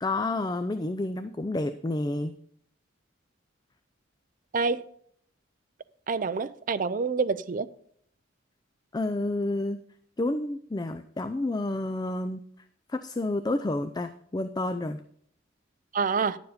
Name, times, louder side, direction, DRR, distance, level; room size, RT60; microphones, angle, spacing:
voice 1, 0.0-2.4 8.9-9.8 10.2-12.4 12.9-15.0, left 2 dB, 20° left, 0.4 m, -30 dB
voice 2, 6.1-7.7 15.9-16.4, right 5 dB, 45° right, 0.4 m, -27 dB
10.5 x 7.1 x 5.0 m
head